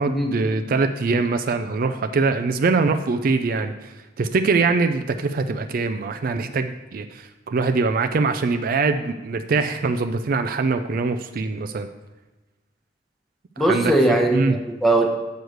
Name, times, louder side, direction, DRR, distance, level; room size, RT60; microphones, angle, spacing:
voice 1, 0.0-11.9 13.6-13.9 14.3-14.6, right 4 dB, 50° right, 7 dB, 0.4 m, -23 dB
voice 2, 13.6-15.1, right 1 dB, ahead, 1 dB, 1.0 m, -20 dB
8.0 x 4.7 x 6.4 m, 1.2 s
head